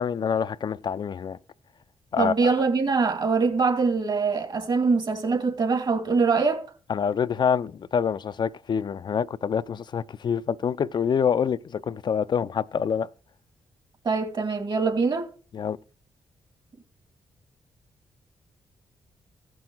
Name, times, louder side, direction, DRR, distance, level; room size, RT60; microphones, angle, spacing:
voice 1, 0.0-1.4 2.1-2.5 6.9-13.1 15.5-15.8, left 7 dB, 50° left, 0.4 m, -26 dB
voice 2, 2.2-6.7 14.0-15.3, right 4 dB, 50° right, 2.3 m, -23 dB
15.0 x 6.1 x 3.8 m
supercardioid pair, 45°, 10 cm